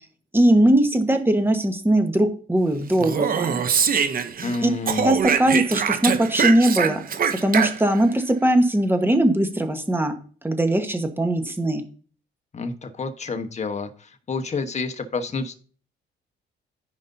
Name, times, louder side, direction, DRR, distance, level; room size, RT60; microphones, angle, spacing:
voice 1, 0.3-3.6 4.6-4.7 5.0-7.0 7.4-10.1 10.4-11.8, right 1 dB, 10° right, 6 dB, 1.4 m, -20 dB
Speech, 2.9-4.6 4.9-8.0, right 7 dB, 45° right, 0.9 m, -23 dB
voice 2, 4.4-5.2 12.5-15.5, left 4 dB, 35° left, 7 dB, 1.2 m, -29 dB
14.5 x 5.2 x 2.8 m, 0.41 s
cardioid pair, 90°, 20 cm